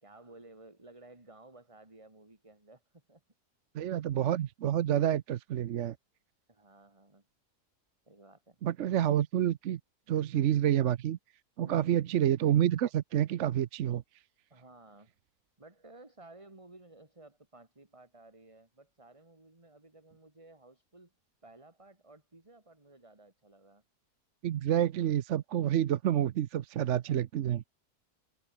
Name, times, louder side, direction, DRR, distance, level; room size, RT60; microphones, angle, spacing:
voice 1, 0.0-3.2 3.8-3.9 6.5-7.2 8.1-8.6 11.6-12.0 14.5-15.1 15.6-21.1 21.4-23.8 26.7-27.2, right 2 dB, 20° right, 2.7 m, -55 dB
voice 2, 3.7-6.0 8.6-9.8 10.1-11.2 11.6-14.0 24.4-27.6, right 11 dB, 60° right, 0.9 m, -28 dB
omnidirectional pair, 1.6 m